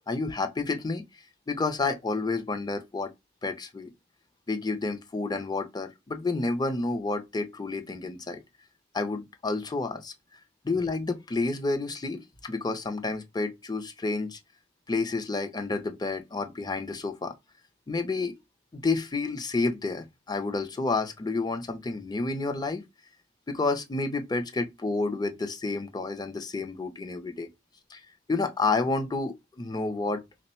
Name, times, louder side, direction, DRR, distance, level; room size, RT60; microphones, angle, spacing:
voice 1, 0.1-1.0 1.5-3.1 3.4-3.9 4.5-8.4 8.9-10.1 10.6-14.4 14.9-17.3 17.9-18.3 18.7-22.8 23.5-27.5 27.9-28.0 28.3-30.2, left 3 dB, 20° left, 0.5 m, -30 dB
3.3 x 2.1 x 4.2 m
head